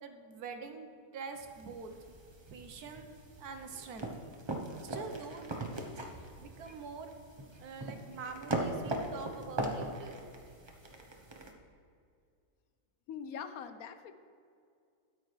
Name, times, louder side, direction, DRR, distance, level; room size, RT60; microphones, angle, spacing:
voice 1, 0.0-0.9 1.1-1.9 2.5-3.1 3.4-4.1 4.8-7.1 7.6-10.2, right 5 dB, 75° right, 6 dB, 1.4 m, -45 dB
sound 1, 1.3-11.5, right 1 dB, 25° right, 0.7 m, -40 dB
voice 2, 13.1-14.1, left 7 dB, 70° left, 9 dB, 1.0 m, -43 dB
13.0 x 9.7 x 3.2 m, 2.3 s
omnidirectional pair, 1.7 m